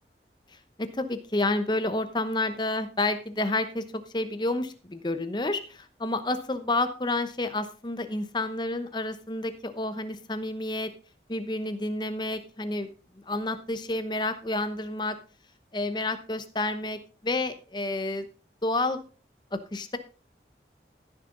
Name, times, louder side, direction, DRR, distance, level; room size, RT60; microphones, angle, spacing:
voice 1, 0.8-10.9 11.3-12.9 13.3-15.2 15.7-18.3 18.6-19.0 19.5-20.0, left 2 dB, 25° left, 10 dB, 0.9 m, -30 dB
14.5 x 6.8 x 3.9 m, 0.36 s
head